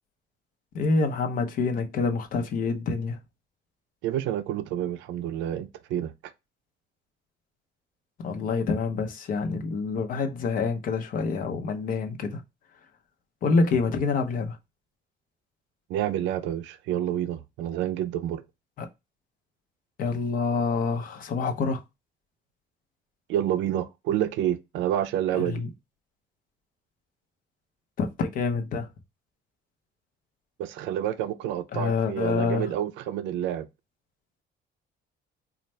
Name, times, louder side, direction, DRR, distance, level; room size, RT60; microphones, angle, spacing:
voice 1, 0.7-3.2 8.2-12.4 13.4-14.6 18.8-18.9 20.0-21.8 25.4-25.7 28.0-28.9 31.7-32.7, left 4 dB, 50° left, 0.7 m, -27 dB
voice 2, 4.0-6.1 15.9-18.4 23.3-25.6 30.6-33.7, right 11 dB, 80° right, 0.4 m, -28 dB
4.3 x 2.4 x 3.1 m
cardioid pair, 170°, 19 cm